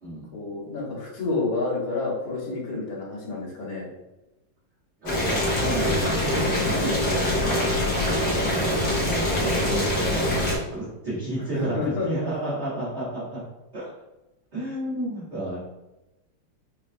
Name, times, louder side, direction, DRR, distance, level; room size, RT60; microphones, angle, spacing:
voice 1, 0.3-3.9 9.5-9.7 11.5-12.1, left 3 dB, 80° left, -4 dB, 2.0 m, -29 dB
voice 2, 5.0-13.4 13.7-13.9 14.5-15.6, right 1 dB, 40° right, -11 dB, 1.3 m, -31 dB
Boiling, 5.1-10.6, left 1 dB, 55° left, 1.3 m, -24 dB
5.5 x 2.2 x 2.5 m, 0.99 s
omnidirectional pair, 2.2 m